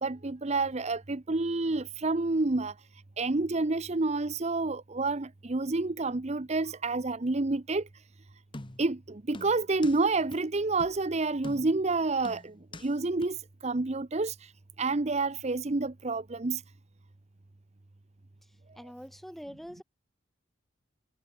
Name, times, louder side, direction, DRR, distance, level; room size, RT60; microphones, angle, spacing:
voice 1, 0.0-2.7 3.2-7.8 8.8-12.5 12.8-13.4 13.6-14.3 14.8-16.6, right 3 dB, 35° right, 0.8 m, -29 dB
sound 1, 8.5-9.0 9.3-10.0 10.3-10.4 10.8-11.0 11.4-11.9 12.2-12.9 13.2-13.3, left 2 dB, 25° left, 1.1 m, -45 dB
voice 2, 18.4-19.8, equal, ahead, 3.4 m, -45 dB
head